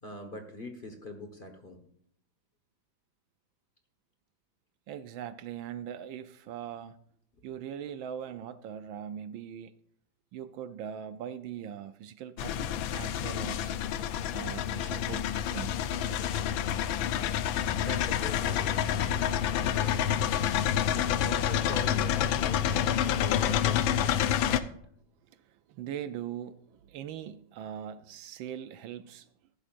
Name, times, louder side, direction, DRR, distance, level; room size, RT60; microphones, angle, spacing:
voice 1, 0.0-1.8 17.8-18.9 19.7-20.2 20.9-24.8, left 1 dB, 30° left, 1.3 m, -43 dB
voice 2, 4.9-7.0 7.4-9.7 10.3-13.8 14.3-16.2 25.3-29.3, right 9 dB, 75° right, 1.4 m, -41 dB
sound 1, 12.4-24.6, left 10 dB, 75° left, 1.4 m, -28 dB
15.0 x 11.5 x 2.5 m
omnidirectional pair, 2.2 m